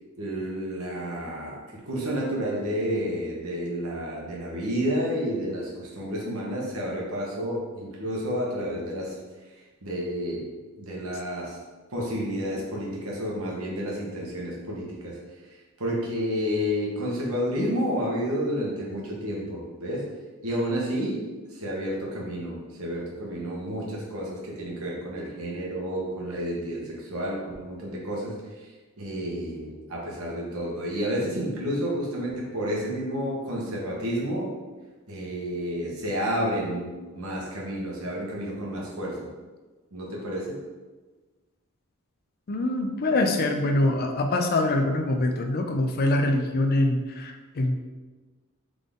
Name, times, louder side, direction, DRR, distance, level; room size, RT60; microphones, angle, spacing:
voice 1, 0.2-9.2 9.8-10.5 10.8-11.6 11.9-15.2 15.5-20.1 20.4-21.2 21.5-34.5 35.1-39.2 39.9-40.6, equal, 75° right, -3 dB, 1.2 m, -30 dB
voice 2, 42.5-47.8, left 2 dB, 45° left, 5 dB, 0.4 m, -24 dB
3.8 x 3.7 x 3.7 m, 1.3 s
head